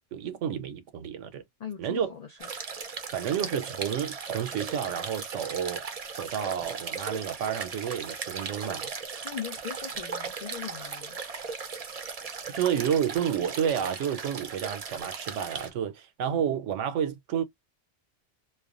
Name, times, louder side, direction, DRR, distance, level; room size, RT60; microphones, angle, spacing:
voice 1, 0.1-1.4 1.8-2.1 3.1-5.9 6.1-8.9 12.5-17.4, right 8 dB, 80° right, 1.0 m, -30 dB
voice 2, 1.6-2.5 9.2-11.2 12.5-12.6, left 8 dB, 75° left, 0.3 m, -39 dB
sound 1, 2.4-15.7, right 5 dB, 45° right, 0.5 m, -37 dB
3.2 x 2.1 x 2.4 m
omnidirectional pair, 1.2 m